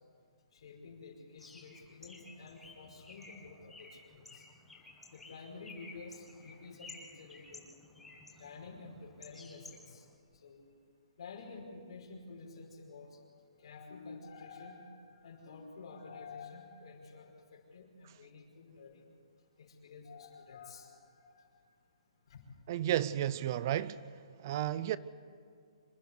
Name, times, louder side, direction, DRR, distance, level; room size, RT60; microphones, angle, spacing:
voice 1, 0.5-4.5 5.1-7.7 8.4-10.6 11.2-13.3 13.6-19.0 19.6-21.8 22.3-22.5, left 4 dB, 60° left, 5.2 m, -50 dB
Bird, 1.4-10.1, left 3 dB, 5° left, 1.8 m, -54 dB
voice 2, 22.7-24.0 24.4-25.0, right 12 dB, 35° right, 0.4 m, -32 dB
26.0 x 11.5 x 9.7 m
hypercardioid pair, 165°, 3 cm